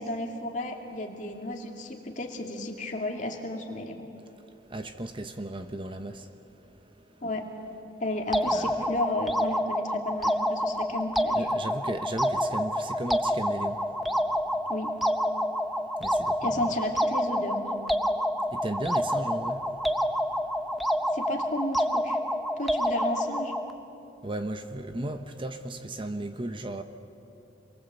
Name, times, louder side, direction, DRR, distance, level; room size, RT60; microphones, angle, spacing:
voice 1, 0.0-4.0 7.2-7.5 8.0-11.5 14.7-14.9 16.4-17.6 21.1-22.2 22.6-23.6, left 1 dB, 40° left, 2.5 m, -33 dB
voice 2, 4.3-7.2 8.5-8.9 11.3-14.7 15.4-16.8 18.4-21.1 24.2-26.8, right 1 dB, 25° right, 0.9 m, -37 dB
sound 1, 8.3-23.7, equal, ahead, 0.7 m, -28 dB
27.5 x 22.5 x 8.1 m
head